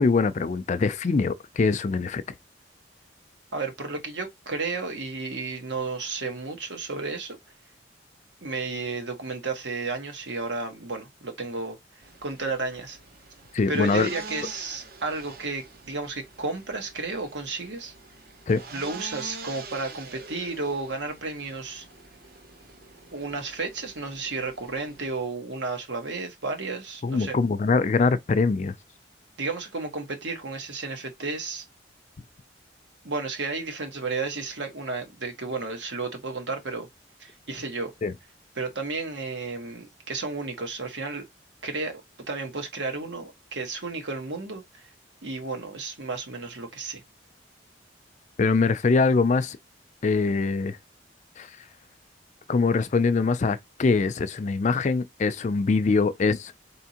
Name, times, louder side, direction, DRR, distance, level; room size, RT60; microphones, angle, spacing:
voice 1, 0.0-2.2 13.5-14.1 18.5-18.6 27.0-28.7 38.0-38.1 48.4-49.6 50.0-50.8 51.4-51.5 52.5-56.5, left 4 dB, 40° left, 0.4 m, -23 dB
voice 2, 3.5-7.4 8.4-11.8 12.2-13.0 13.7-17.9 18.7-21.9 23.1-27.4 29.4-31.6 33.0-36.9 37.2-37.9 38.5-41.3 41.6-42.0 42.3-44.8 45.2-47.0, right 3 dB, 75° right, 1.3 m, -32 dB
sound 1, 12.0-25.1, right 4 dB, 55° right, 0.7 m, -45 dB
4.1 x 3.5 x 2.8 m
head